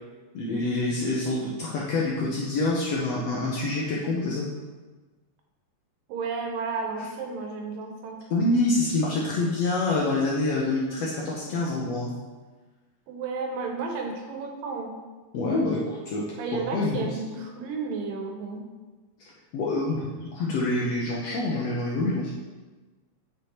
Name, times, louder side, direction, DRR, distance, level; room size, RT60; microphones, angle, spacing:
voice 1, 0.3-4.4 8.3-12.1 15.3-16.2 16.5-17.2 19.5-22.3, left 2 dB, 70° left, -4 dB, 1.6 m, -26 dB
voice 2, 6.1-8.2 13.1-15.0 16.4-18.7, right 4 dB, 80° right, 2 dB, 2.6 m, -32 dB
8.1 x 5.0 x 4.4 m, 1.3 s
omnidirectional pair, 3.9 m